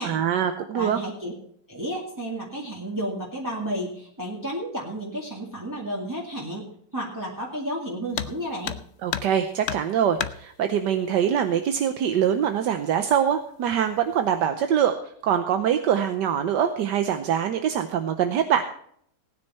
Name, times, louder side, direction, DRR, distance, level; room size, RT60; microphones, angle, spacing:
voice 1, 0.0-1.0 9.0-15.0 15.2-18.6, right 9 dB, 75° right, 8 dB, 1.4 m, -23 dB
voice 2, 0.7-1.3 1.7-8.8, right 1 dB, 10° right, -4 dB, 2.0 m, -32 dB
sound 1, 8.1-8.4 8.6-9.4 9.6-10.4 11.6-11.7 12.1-12.2 13.0-13.4 13.7-14.1, left 9 dB, 60° left, 0.8 m, -31 dB
18.5 x 9.8 x 4.3 m, 0.65 s
omnidirectional pair, 1.9 m